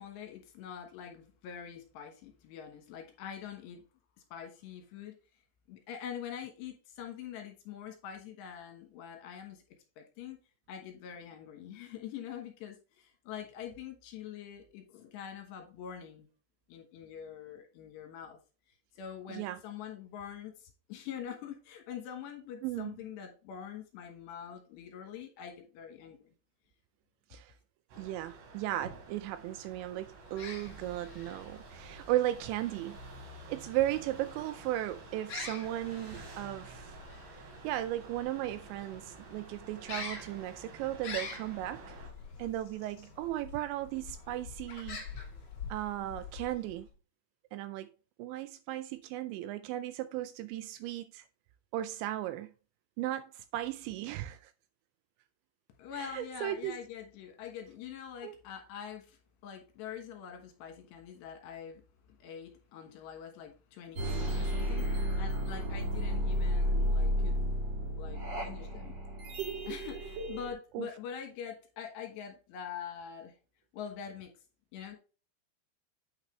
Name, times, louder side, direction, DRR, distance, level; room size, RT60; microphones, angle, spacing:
voice 1, 0.0-3.8 4.3-5.2 5.7-9.6 10.0-10.4 10.7-16.3 16.7-18.4 18.9-26.3 55.8-61.8 62.1-67.4 67.9-69.0 69.7-73.3 73.7-74.3 74.7-75.0, left 8 dB, 70° left, 3.2 m, -44 dB
voice 2, 22.6-22.9 27.3-27.5 28.0-33.0 33.5-37.0 37.4-42.0 42.4-45.0 45.7-46.9 47.5-47.9 48.2-51.3 51.7-52.5 53.0-54.5 56.0-56.8 58.2-58.3 70.7-70.9, right 14 dB, 85° right, 2.7 m, -36 dB
sound 1, 27.9-42.1, right 3 dB, 65° right, 4.2 m, -50 dB
sound 2, 30.2-46.9, left 5 dB, 45° left, 2.4 m, -47 dB
sound 3, 64.0-70.5, equal, 45° right, 3.0 m, -32 dB
8.8 x 5.8 x 3.2 m
omnidirectional pair, 5.5 m